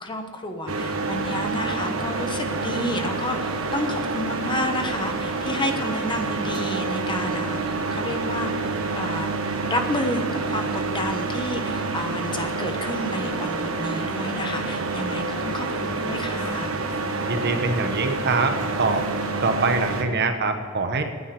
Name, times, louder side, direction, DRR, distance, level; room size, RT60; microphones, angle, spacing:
voice 1, 0.0-8.5 8.9-9.3 9.7-16.7, left 1 dB, 25° left, 5 dB, 1.2 m, -30 dB
sound 1, 0.7-20.0, right 3 dB, 80° right, 1.3 m, -28 dB
voice 2, 17.3-19.1 19.4-21.0, right 3 dB, 55° right, 6 dB, 1.2 m, -24 dB
9.5 x 9.4 x 9.5 m, 2.3 s
head